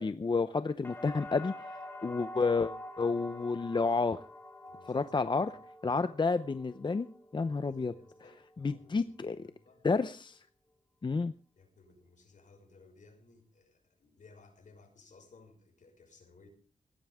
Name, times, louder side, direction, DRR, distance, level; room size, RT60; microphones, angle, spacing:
voice 1, 0.0-1.5 2.0-4.2 4.9-5.5 5.8-7.1 7.3-7.9 8.6-9.4 9.8-10.4 11.0-11.3, left 4 dB, 35° left, 11 dB, 0.7 m, -30 dB
sound 1, 0.8-8.8 9.1-9.8, left 1 dB, 15° left, 3.4 m, -47 dB
voice 2, 3.0-3.6 4.7-5.6 5.8-6.0 7.4-8.4 8.7-9.8 11.5-16.5, left 3 dB, 65° left, 3 dB, 6.3 m, -60 dB
20.0 x 17.0 x 3.6 m, 0.37 s
wide cardioid pair, 110°, 14 cm